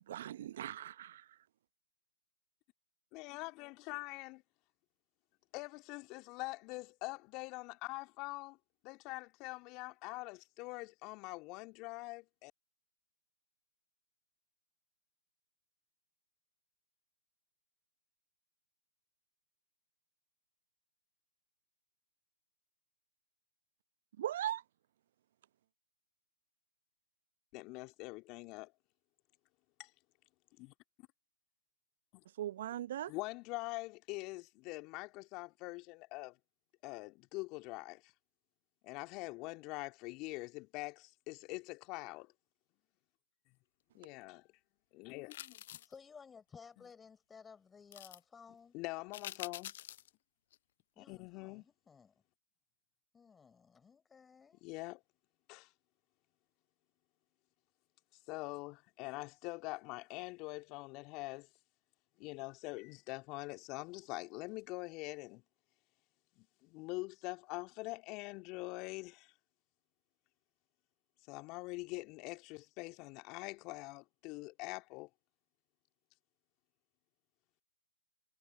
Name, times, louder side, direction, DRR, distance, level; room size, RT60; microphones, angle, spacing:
voice 1, 0.1-1.2 24.2-24.6 32.4-33.1, right 12 dB, 50° right, 0.8 m, -39 dB
voice 2, 3.1-4.4 5.5-8.6 8.8-12.5 27.5-28.7 29.8-29.9 30.6-30.7 32.1-32.2 33.1-36.4 36.8-38.1 38.8-42.3 43.9-44.5 44.9-45.8 48.7-49.7 51.0-51.6 54.6-55.0 55.5-55.7 58.3-61.5 62.2-65.4 66.4-69.3 71.3-75.1, left 24 dB, 30° left, 2.2 m, -44 dB
Biting Crunchy A, 45.3-46.0 47.9-48.2 49.1-50.1 50.5-50.6, left 12 dB, 50° left, 0.5 m, -47 dB
voice 3, 45.8-48.7 51.0-52.1 53.1-54.6, left 6 dB, 10° left, 4.2 m, -57 dB
figure-of-eight pair, 125°, 0 cm